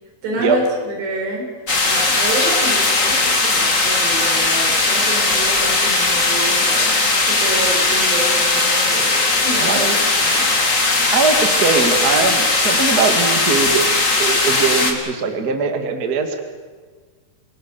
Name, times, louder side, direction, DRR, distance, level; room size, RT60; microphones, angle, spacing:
voice 1, 0.2-1.5 1.8-9.9 10.2-10.6, right 1 dB, 85° right, 1 dB, 6.9 m, -28 dB
sound 1, 1.7-14.9, left 3 dB, 25° left, 1.8 m, -18 dB
voice 2, 9.6-10.0 11.1-13.9 14.2-16.4, right 5 dB, 35° right, 5 dB, 1.7 m, -20 dB
27.5 x 18.5 x 7.0 m, 1.5 s
omnidirectional pair, 4.8 m